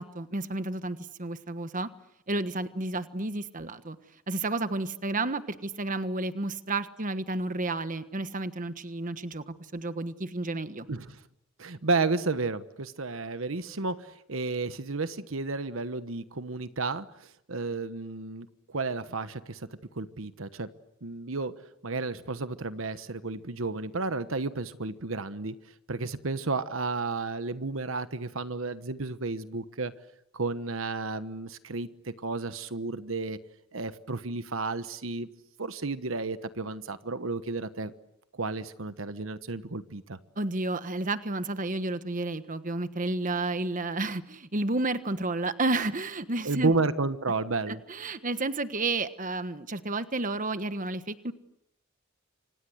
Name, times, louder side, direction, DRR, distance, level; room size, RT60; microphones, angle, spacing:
voice 1, 0.0-1.9 2.3-4.0 4.3-10.9 40.4-46.7 47.7-51.3, right 2 dB, 40° right, 1.3 m, -31 dB
voice 2, 11.6-17.1 17.5-19.7 19.9-20.7 21.0-21.5 21.8-25.5 25.9-29.9 30.3-33.4 33.7-35.3 35.6-37.9 38.3-40.2 46.4-47.8, right 3 dB, 75° right, 1.2 m, -32 dB
29.0 x 25.5 x 7.9 m
head